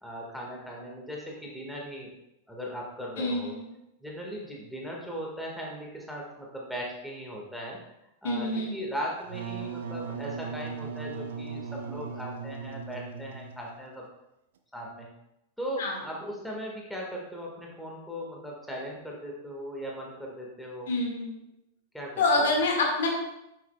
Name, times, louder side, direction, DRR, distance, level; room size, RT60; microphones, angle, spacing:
voice 1, 0.0-2.1 2.5-3.5 4.0-7.8 8.2-14.0 14.7-15.1 15.6-20.9 21.9-22.5, equal, ahead, -3 dB, 1.8 m, -38 dB
voice 2, 3.2-3.7 8.2-8.8 15.8-16.0 20.9-21.4 22.2-23.1, left 2 dB, 60° left, 0 dB, 1.9 m, -27 dB
Wind instrument woodwind instrument, 9.2-13.8, right 5 dB, 60° right, 0.7 m, -38 dB
9.4 x 7.6 x 2.3 m, 0.86 s
figure-of-eight pair, 90°, 0 cm